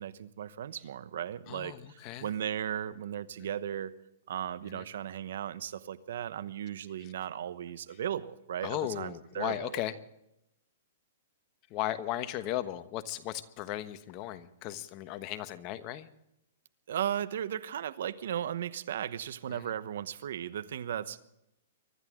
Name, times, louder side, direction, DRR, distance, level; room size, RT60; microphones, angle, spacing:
voice 1, 0.0-4.0 4.3-9.7 16.9-21.2, right 10 dB, 70° right, 15 dB, 1.0 m, -36 dB
voice 2, 1.5-2.3 3.4-3.5 4.6-4.8 7.0-7.1 7.9-8.0 8.6-9.9 11.7-16.1 19.5-19.7, left 13 dB, 35° left, 11 dB, 1.2 m, -36 dB
24.0 x 13.0 x 3.8 m, 0.81 s
hypercardioid pair, 145°, 0 cm